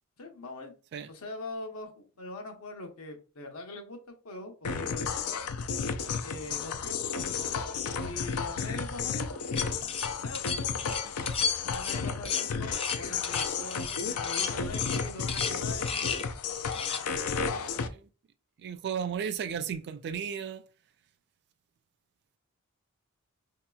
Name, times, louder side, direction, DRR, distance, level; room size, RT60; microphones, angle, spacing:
voice 1, 0.2-0.7 1.1-5.3 6.2-7.3 8.0-9.3 10.2-10.9 11.6-16.2 16.8-17.0 17.3-17.8, left 2 dB, 75° left, 0.8 m, -42 dB
sound 1, 4.6-17.9, left 6 dB, 90° left, 0.4 m, -33 dB
sound 2, 9.6-16.3 16.7-17.0, left 6 dB, 25° left, 0.4 m, -34 dB
voice 2, 18.6-20.6, right 7 dB, 50° right, 0.3 m, -34 dB
4.8 x 2.8 x 2.3 m
head